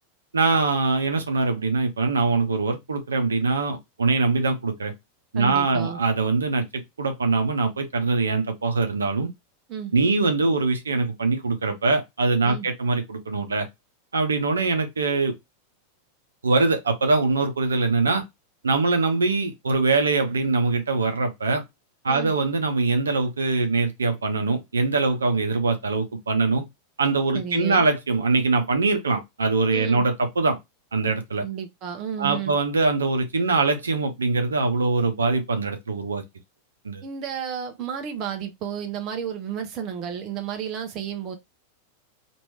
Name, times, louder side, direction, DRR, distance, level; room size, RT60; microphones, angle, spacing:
voice 1, 0.3-4.9 5.3-9.3 9.9-13.7 14.1-15.3 16.4-18.2 18.6-21.6 22.0-26.6 27.0-30.6 30.9-31.4 32.2-36.2 36.8-37.0, right 3 dB, 70° right, 0.7 m, -23 dB
voice 2, 5.3-6.0 9.7-9.9 12.4-12.7 22.1-22.3 27.3-27.9 29.7-30.0 31.4-32.5 37.0-41.4, right 8 dB, 35° right, 0.6 m, -32 dB
3.0 x 2.6 x 3.2 m
figure-of-eight pair, 90°, 0 cm